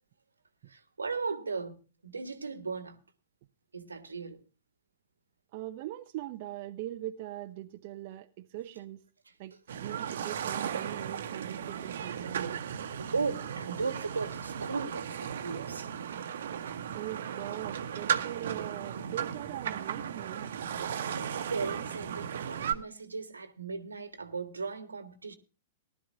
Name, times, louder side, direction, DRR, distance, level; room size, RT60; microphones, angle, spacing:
voice 1, 0.7-3.0 3.7-4.4 10.4-10.7 12.5-12.6 13.0-16.2 16.7-16.8 21.0-25.4, right 4 dB, 85° right, 1.4 m, -37 dB
voice 2, 5.5-9.0 9.4-12.6 16.9-20.6, right 14 dB, 50° right, 0.7 m, -41 dB
sound 1, 9.7-22.7, right 8 dB, 65° right, 1.1 m, -36 dB
19.0 x 12.0 x 2.7 m
figure-of-eight pair, 110°, 0 cm